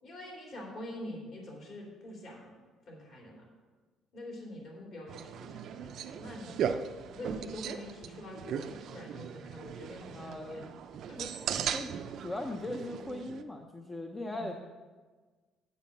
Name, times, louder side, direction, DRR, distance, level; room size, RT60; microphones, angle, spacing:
voice 1, 0.0-2.5 2.9-3.4 4.1-6.8 7.1-10.7 11.1-11.2 14.2-14.5, left 1 dB, 45° left, -2 dB, 3.1 m, -45 dB
sound 1, 5.1-13.4, right 8 dB, 50° right, 0.5 m, -38 dB
voice 2, 10.1-10.7 11.2-11.3 11.7-11.9 12.2-14.5, left 1 dB, 15° left, 4 dB, 0.5 m, -39 dB
8.2 x 7.2 x 6.7 m, 1.4 s
cardioid pair, 165°, 0 cm